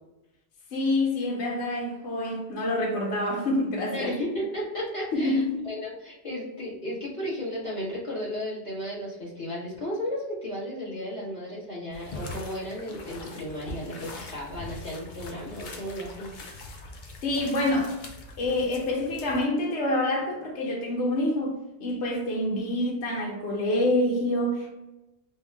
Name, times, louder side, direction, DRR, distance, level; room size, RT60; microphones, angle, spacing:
voice 1, 0.7-4.2 5.1-5.6 17.2-17.9 18.4-24.7, left 1 dB, 80° left, 1.0 m, -27 dB
voice 2, 3.9-16.4, equal, 30° left, 1.4 m, -34 dB
sound 1, 11.9-19.5, left 2 dB, 55° left, 0.6 m, -42 dB
3.5 x 2.3 x 3.2 m
omnidirectional pair, 1.1 m